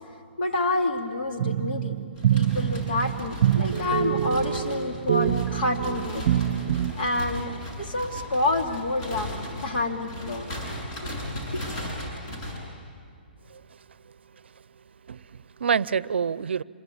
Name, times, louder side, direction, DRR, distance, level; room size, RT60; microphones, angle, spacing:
voice 1, 0.4-2.0 2.3-6.3 6.9-7.5 7.8-10.5 11.5-11.6, left 2 dB, 60° left, 3 dB, 2.8 m, -28 dB
sound 1, 1.4-6.9, right 10 dB, 45° right, 0.8 m, -25 dB
sound 2, 2.1-12.6, left 1 dB, 35° left, 7.1 m, -37 dB
voice 2, 13.5-14.5 15.1-16.6, right 6 dB, 80° right, 20 dB, 0.5 m, -29 dB
26.5 x 22.5 x 8.6 m, 2.2 s
hypercardioid pair, 150°, 6 cm